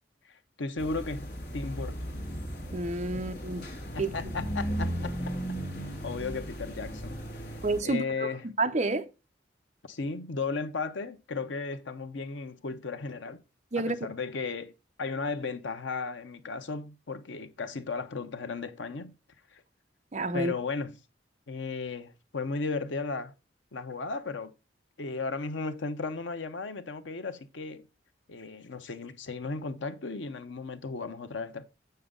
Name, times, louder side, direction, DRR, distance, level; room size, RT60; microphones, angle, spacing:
voice 1, 0.3-2.1 3.9-5.4 6.0-7.5 7.8-8.4 9.9-13.4 13.8-14.7 15.0-19.1 19.5-19.6 20.3-21.0 21.5-23.3 23.7-24.5 25.0-27.9 28.3-31.6, left 4 dB, 85° left, 0.8 m, -35 dB
sound 1, 0.8-7.8, equal, 55° left, 1.7 m, -36 dB
voice 2, 2.7-3.6 4.0-4.1 7.6-8.3 8.6-9.1 13.7-14.0 20.1-20.5, right 2 dB, 40° right, 0.7 m, -29 dB
7.9 x 6.7 x 3.7 m
head